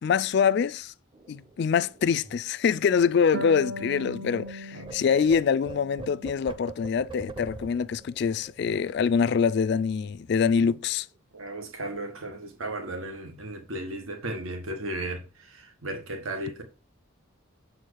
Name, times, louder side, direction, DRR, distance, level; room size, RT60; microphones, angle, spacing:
voice 1, 0.0-0.9 1.3-11.1, left 6 dB, 55° left, 0.3 m, -25 dB
sound 1, 1.1-4.5 4.8-9.8 10.1-10.3 10.6-11.2, right 3 dB, 25° right, 0.8 m, -45 dB
Harp, 3.3-6.7 7.1-8.1, equal, 55° right, 0.9 m, -40 dB
voice 2, 4.7-5.3 10.5-10.7 11.3-16.6, right 1 dB, 85° right, 1.5 m, -36 dB
7.6 x 4.6 x 6.4 m
head